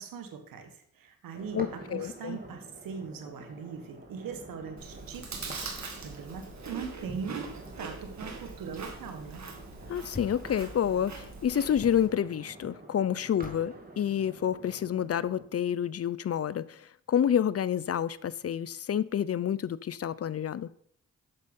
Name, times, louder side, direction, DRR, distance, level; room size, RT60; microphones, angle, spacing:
voice 1, 0.0-9.5, right 6 dB, 80° right, 7 dB, 1.4 m, -41 dB
sound 1, 1.3-15.4, right 1 dB, 25° right, 2.5 m, -48 dB
voice 2, 1.5-2.4 9.9-20.7, left 9 dB, 45° left, 19 dB, 0.5 m, -29 dB
Chewing mastication, 4.8-12.1, right 4 dB, 55° right, 2.0 m, -42 dB
sound 2, 10.1-10.5 11.8-12.1 13.4-13.7, left 3 dB, 25° left, 1.0 m, -42 dB
8.2 x 6.7 x 5.3 m, 0.65 s
supercardioid pair, 40°, 33 cm